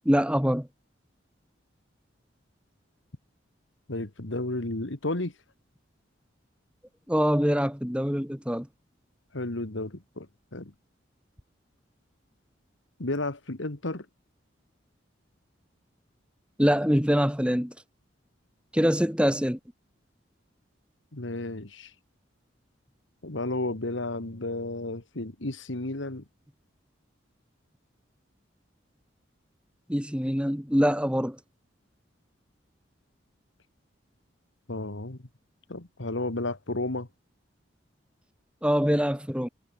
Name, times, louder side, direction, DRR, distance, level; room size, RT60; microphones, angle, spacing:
voice 1, 0.0-0.7 7.1-8.7 16.6-17.7 18.7-19.6 29.9-31.4 38.6-39.5, equal, 5° right, 2.8 m, -24 dB
voice 2, 3.9-5.3 9.3-10.3 10.5-10.7 13.0-14.1 21.1-21.9 23.2-26.2 34.7-35.2 35.7-37.1, left 2 dB, 80° left, 2.0 m, -32 dB
head